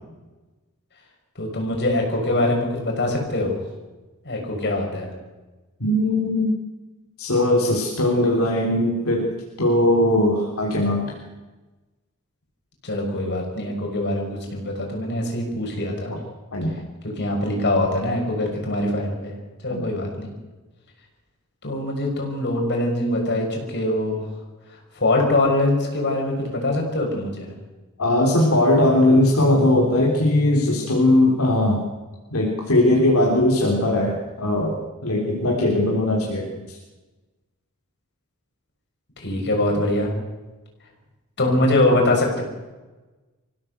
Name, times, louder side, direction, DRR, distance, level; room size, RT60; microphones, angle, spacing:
voice 1, 1.3-3.5 4.2-5.1 12.8-16.1 17.0-19.3 19.6-20.3 21.6-24.2 24.9-27.5 39.2-40.1 41.4-42.4, left 1 dB, 50° left, 1 dB, 6.4 m, -23 dB
voice 2, 5.8-6.6 7.2-11.2 16.5-16.8 19.8-19.9 28.0-31.8 32.3-36.8, left 1 dB, 70° left, -1 dB, 3.5 m, -19 dB
25.0 x 16.5 x 8.0 m, 1.2 s
head